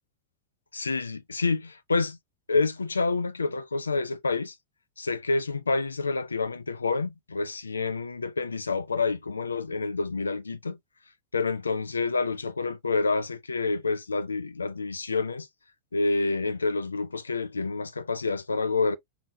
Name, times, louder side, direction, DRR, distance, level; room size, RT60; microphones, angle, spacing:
voice 1, 0.7-2.2 2.5-4.5 5.0-10.8 11.3-15.5 15.9-19.0, left 3 dB, 75° left, 0.3 m, -28 dB
4.2 x 2.0 x 2.8 m
figure-of-eight pair, 90°, 0 cm